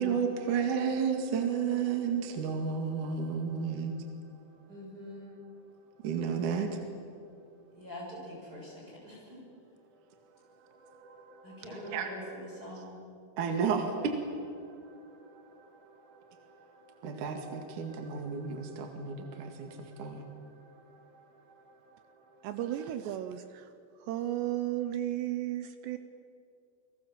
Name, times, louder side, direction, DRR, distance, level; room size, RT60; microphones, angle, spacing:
voice 1, 0.0-4.4 6.0-6.8 10.3-12.9 13.4-22.4, right 6 dB, 50° right, 4 dB, 3.0 m, -34 dB
voice 2, 4.7-5.4 7.8-9.4 11.4-13.0, equal, 20° right, -4 dB, 6.8 m, -44 dB
voice 3, 22.4-26.0, right 13 dB, 75° right, 9 dB, 2.9 m, -34 dB
29.5 x 23.0 x 7.4 m, 2.4 s
omnidirectional pair, 5.4 m